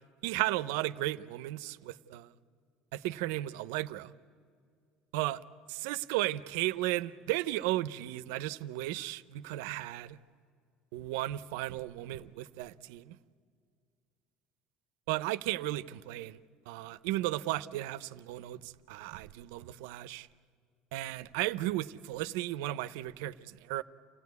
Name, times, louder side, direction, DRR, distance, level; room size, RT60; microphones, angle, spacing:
voice 1, 0.2-2.3 2.9-4.1 5.1-5.4 5.7-10.2 10.9-13.2 15.1-16.4 16.7-20.3 20.9-23.8, right 16 dB, 85° right, 0.6 m, -35 dB
28.5 x 16.5 x 9.5 m
cardioid pair, 125°, 0 cm